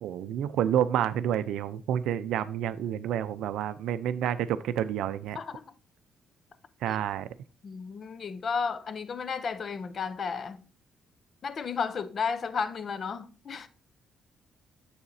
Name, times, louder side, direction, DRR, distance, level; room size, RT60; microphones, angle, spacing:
voice 1, 0.0-5.4 6.8-7.3, right 10 dB, 85° right, 0.4 m, -29 dB
voice 2, 7.6-10.6 11.4-13.7, left 5 dB, 45° left, 0.6 m, -33 dB
7.2 x 7.0 x 2.6 m
cardioid pair, 125°, 0 cm